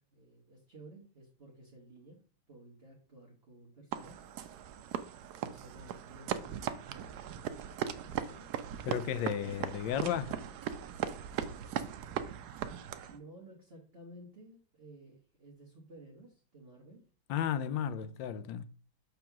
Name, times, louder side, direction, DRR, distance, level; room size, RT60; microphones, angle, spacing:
voice 1, 0.0-2.2 2.5-4.2 5.4-6.6 6.9-8.5 12.5-17.0, right 1 dB, 35° right, 1.5 m, -55 dB
sound 1, 3.9-13.2, right 9 dB, 70° right, 0.9 m, -39 dB
voice 2, 8.8-10.4 17.3-18.7, left 9 dB, 75° left, 1.2 m, -34 dB
6.9 x 3.3 x 5.9 m
omnidirectional pair, 2.1 m